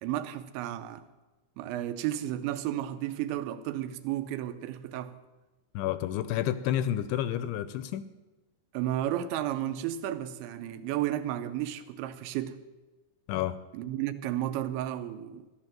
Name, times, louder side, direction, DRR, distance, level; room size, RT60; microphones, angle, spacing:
voice 1, 0.0-1.1 1.6-5.2 8.7-12.6 13.7-15.5, right 12 dB, 80° right, 3.0 m, -33 dB
voice 2, 5.7-8.1 13.3-13.6, left 11 dB, 80° left, 2.7 m, -30 dB
14.5 x 12.0 x 7.5 m
omnidirectional pair, 5.4 m